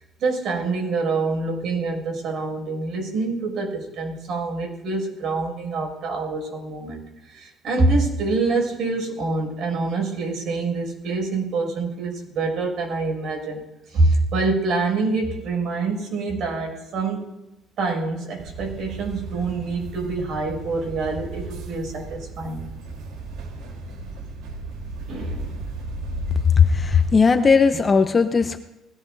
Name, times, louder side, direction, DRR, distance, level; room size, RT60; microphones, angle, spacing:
voice 1, 0.2-7.0 7.3-13.6 13.9-17.2 17.8-22.7 25.1-25.6, right 3 dB, 55° right, 1 dB, 5.9 m, -25 dB
sound 1, 18.4-27.2, right 3 dB, 80° right, 3.5 m, -35 dB
voice 2, 26.6-28.6, left 5 dB, 20° left, 9 dB, 0.6 m, -17 dB
20.5 x 17.5 x 2.6 m, 0.95 s
cardioid pair, 150°, 0 cm